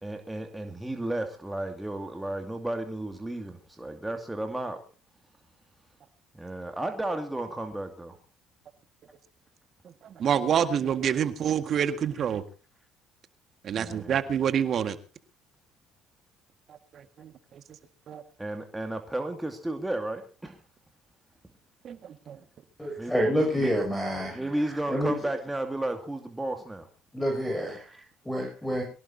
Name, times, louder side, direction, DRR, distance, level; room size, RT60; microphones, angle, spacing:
voice 1, 0.0-4.9 6.3-8.2 13.7-14.2 18.4-20.6 23.0-23.8 24.3-26.9 27.7-28.1, right 1 dB, 10° right, 2.4 m, -33 dB
voice 2, 10.2-12.4 13.6-15.0 17.2-17.3 18.1-18.2 21.8-22.4, right 8 dB, 50° right, 1.8 m, -27 dB
voice 3, 22.8-24.4 24.7-25.1 27.1-27.8 28.2-28.8, equal, 5° left, 7.5 m, -28 dB
23.5 x 17.0 x 2.8 m
hypercardioid pair, 70°, 0 cm